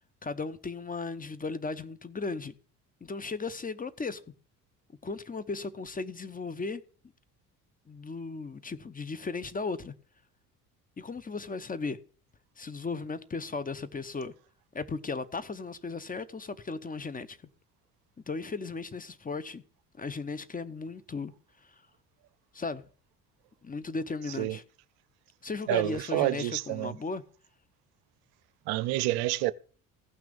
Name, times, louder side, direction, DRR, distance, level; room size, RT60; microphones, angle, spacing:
voice 1, 0.2-2.5 3.0-4.2 5.0-6.8 7.9-9.9 11.0-12.0 12.6-14.3 14.7-17.4 18.3-19.6 20.0-21.3 22.5-22.8 23.6-24.6 25.4-27.2, left 4 dB, 20° left, 0.8 m, -36 dB
voice 2, 25.7-26.9 28.7-29.5, right 17 dB, 55° right, 0.6 m, -28 dB
15.5 x 6.0 x 6.9 m
figure-of-eight pair, 55°, 47 cm